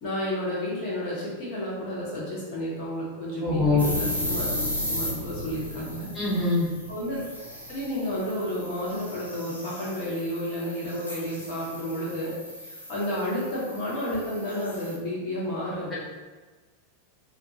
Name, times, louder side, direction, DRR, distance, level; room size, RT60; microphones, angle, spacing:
voice 1, 0.0-4.5 4.9-6.1 6.9-7.2 7.7-12.3 12.6-15.9, equal, 40° left, -7 dB, 1.2 m, -31 dB
voice 2, 3.4-3.8 6.1-6.7, left 3 dB, 15° left, -10 dB, 1.4 m, -23 dB
sound 1, 3.5-8.6 8.9-9.1, left 3 dB, 70° left, 0.6 m, -36 dB
sound 2, 3.8-15.0, equal, 85° right, 0.6 m, -37 dB
2.8 x 2.5 x 2.6 m, 1.3 s
figure-of-eight pair, 90°, 0 cm